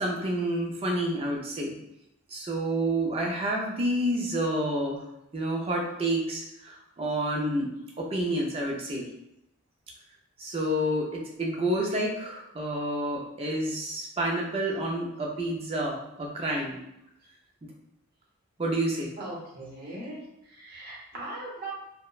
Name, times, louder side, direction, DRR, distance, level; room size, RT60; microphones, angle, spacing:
voice 1, 0.0-1.7 2.3-5.0 5.3-7.7 8.0-9.1 10.4-16.8 18.6-19.1, right 1 dB, 25° right, -1 dB, 0.4 m, -29 dB
voice 2, 19.2-21.7, right 2 dB, 45° right, -4 dB, 0.8 m, -39 dB
2.9 x 2.1 x 2.3 m, 0.83 s
head